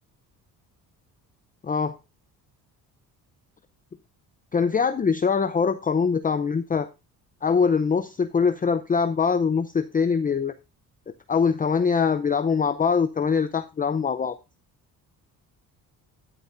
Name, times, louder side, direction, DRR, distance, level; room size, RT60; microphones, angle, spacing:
voice 1, 1.6-2.0 4.5-6.9 7.4-10.5 11.3-14.4, left 5 dB, 20° left, 10 dB, 0.5 m, -23 dB
11.0 x 9.9 x 2.5 m, 0.27 s
cardioid pair, 85°, 39 cm